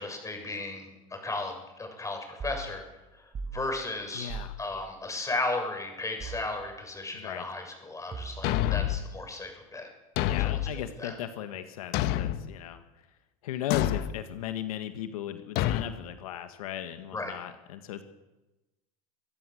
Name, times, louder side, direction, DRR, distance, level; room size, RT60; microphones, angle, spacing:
voice 1, 0.0-2.8 3.2-3.3 3.5-9.9 10.4-11.1 17.1-17.3, left 2 dB, 15° left, 3 dB, 7.2 m, -35 dB
sound 1, 2.4-2.7 3.3-3.6 4.3-4.6 6.2-6.5 8.1-8.6, right 4 dB, 30° right, 4.3 m, -38 dB
voice 2, 4.1-4.6 7.1-7.4 10.2-12.8 13.4-18.0, left 11 dB, 90° left, 9 dB, 1.7 m, -37 dB
Thump thud, 8.4-9.1 10.2-10.7 11.9-12.5 13.7-14.1 15.6-15.9, left 13 dB, 65° left, 1.4 m, -27 dB
25.0 x 15.0 x 7.9 m, 1.1 s
supercardioid pair, 100°, 18 cm